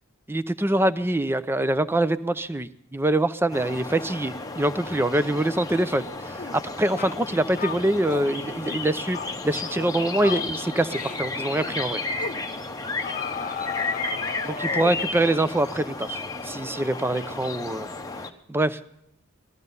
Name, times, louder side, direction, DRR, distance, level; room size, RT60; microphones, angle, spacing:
voice 1, 0.3-9.2 9.4-12.0 14.5-17.9 18.5-18.8, right 1 dB, 10° right, 13 dB, 0.5 m, -24 dB
sound 1, 3.5-18.3, left 3 dB, 15° left, 0.9 m, -33 dB
sound 2, 6.4-6.6 7.0-7.2 7.6-8.3 8.6-8.8 9.1-9.3 9.6-9.9 10.2-10.5 10.9-11.2 11.5-11.8 12.2-12.4 13.0-15.1, left 6 dB, 35° left, 0.5 m, -34 dB
19.5 x 14.0 x 5.4 m, 0.76 s
head